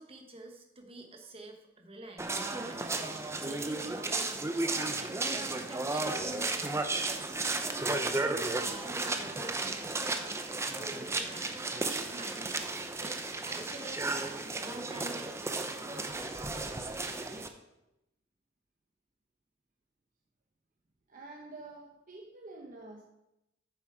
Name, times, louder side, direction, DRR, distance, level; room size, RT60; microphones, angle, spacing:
voice 1, 0.0-2.4 2.7-7.0 7.5-10.0 10.5-11.6 11.8-12.7 13.0-15.6, right 2 dB, 30° right, 3 dB, 1.3 m, -48 dB
sound 1, 2.2-17.5, right 2 dB, 15° right, 0.6 m, -34 dB
voice 2, 21.1-23.0, right 2 dB, 45° right, 0 dB, 0.9 m, -48 dB
9.2 x 7.4 x 4.8 m, 0.89 s
head